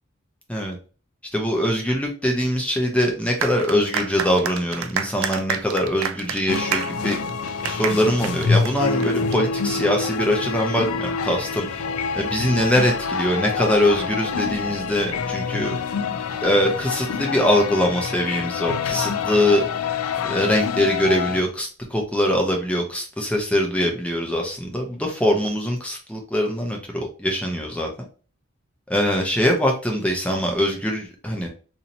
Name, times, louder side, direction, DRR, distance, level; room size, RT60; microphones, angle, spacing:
voice 1, 1.3-7.2 7.7-11.9 12.1-15.7 16.4-19.6 20.2-27.9 28.9-31.5, equal, 5° left, 1 dB, 0.7 m, -22 dB
sound 1, 3.4-9.4, right 7 dB, 75° right, 0.4 m, -29 dB
sound 2, 6.5-21.4, left 5 dB, 80° left, 0.4 m, -26 dB
2.8 x 2.7 x 4.1 m, 0.37 s
head